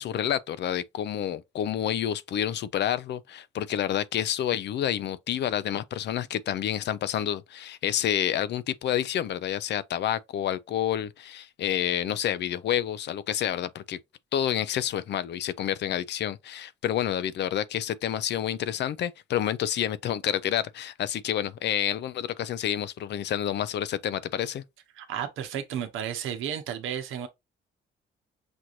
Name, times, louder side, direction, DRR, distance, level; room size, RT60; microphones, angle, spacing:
voice 1, 0.0-14.0 14.3-24.6, left 10 dB, 60° left, 0.4 m, -29 dB
voice 2, 24.9-27.3, right 9 dB, 85° right, 0.9 m, -33 dB
6.0 x 2.5 x 3.0 m
cardioid pair, 90°, 20 cm